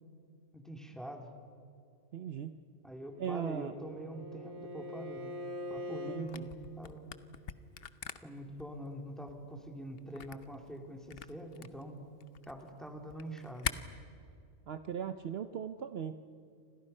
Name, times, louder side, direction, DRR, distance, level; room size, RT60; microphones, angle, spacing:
voice 1, 0.5-1.2 2.8-5.4 5.7-7.1 8.2-12.0 12.5-13.8, right 1 dB, ahead, 2 dB, 2.6 m, -44 dB
voice 2, 2.1-2.5 3.2-3.7 6.1-6.5 14.7-16.1, right 8 dB, 60° right, 9 dB, 0.9 m, -38 dB
Bowed string instrument, 3.1-6.3, left 1 dB, 75° right, 3.5 m, -43 dB
Camera, 6.2-13.7, left 7 dB, 55° left, 1.0 m, -44 dB
29.5 x 26.0 x 5.5 m, 2.4 s
omnidirectional pair, 1.3 m